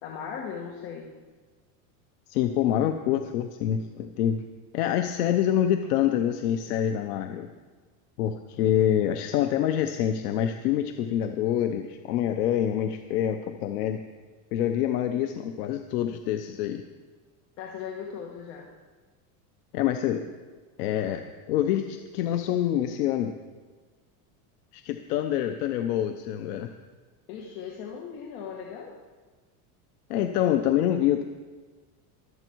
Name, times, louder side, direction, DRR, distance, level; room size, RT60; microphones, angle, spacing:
voice 1, 0.0-1.1 17.6-18.7 27.3-28.9, left 7 dB, 65° left, -1 dB, 1.8 m, -38 dB
voice 2, 2.3-4.5 4.7-7.5 8.2-14.0 14.5-16.8 19.7-20.3 20.8-23.4 24.7-26.7 30.1-31.2, left 10 dB, 85° left, 7 dB, 0.9 m, -26 dB
24.0 x 8.0 x 4.7 m, 1.4 s
cardioid pair, 170°, 45 cm